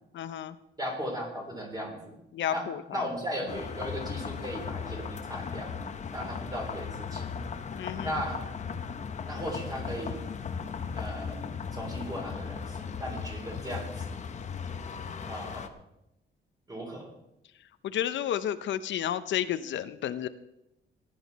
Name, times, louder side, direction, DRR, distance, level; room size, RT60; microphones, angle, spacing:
voice 1, 0.1-0.6 2.3-3.1 7.8-8.2 17.8-20.3, left 10 dB, 80° left, 12 dB, 0.6 m, -31 dB
voice 2, 0.8-2.2 2.5-2.7 2.9-5.7 6.1-7.3 8.0-8.4 9.2-10.2 10.9-11.4 11.7-14.2 15.3-15.7 16.7-17.1, equal, 20° right, 1 dB, 3.4 m, -37 dB
sound 1, 3.5-15.7, left 6 dB, 40° left, 0.8 m, -37 dB
16.5 x 10.5 x 4.1 m, 0.87 s
wide cardioid pair, 165°, 19 cm